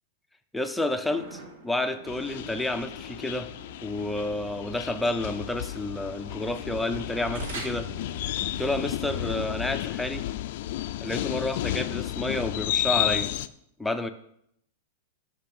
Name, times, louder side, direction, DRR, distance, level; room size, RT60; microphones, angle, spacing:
voice 1, 0.5-3.5 3.8-7.9 8.6-10.2 11.0-13.3 13.8-14.1, left 2 dB, ahead, 7 dB, 0.6 m, -30 dB
sound 1, 1.1-9.7, equal, 75° right, 3.3 m, -43 dB
sound 2, 2.1-13.5, left 13 dB, 50° left, 0.4 m, -32 dB
12.0 x 5.8 x 6.0 m, 0.73 s
supercardioid pair, 170°, 0 cm